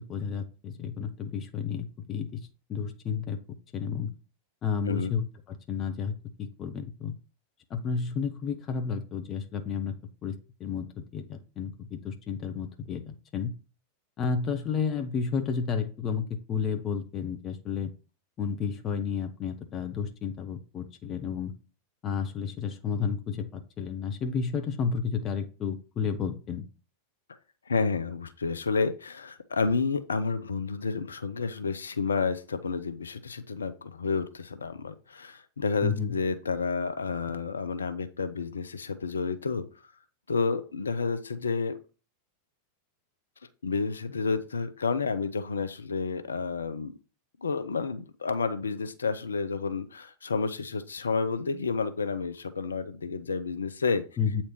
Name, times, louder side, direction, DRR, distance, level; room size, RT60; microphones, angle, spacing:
voice 1, 0.0-2.3 2.7-3.4 3.7-4.1 4.6-5.2 5.7-7.1 7.7-9.9 10.2-13.0 13.3-13.5 14.2-17.9 18.4-21.5 22.0-26.6 35.8-36.1 54.2-54.4, left 6 dB, 30° left, 7 dB, 1.0 m, -31 dB
voice 2, 27.7-39.7 40.3-41.7 43.6-46.9 47.4-54.0, left 4 dB, 70° left, 11 dB, 0.8 m, -30 dB
8.4 x 4.4 x 4.5 m, 0.35 s
figure-of-eight pair, 90°, 0 cm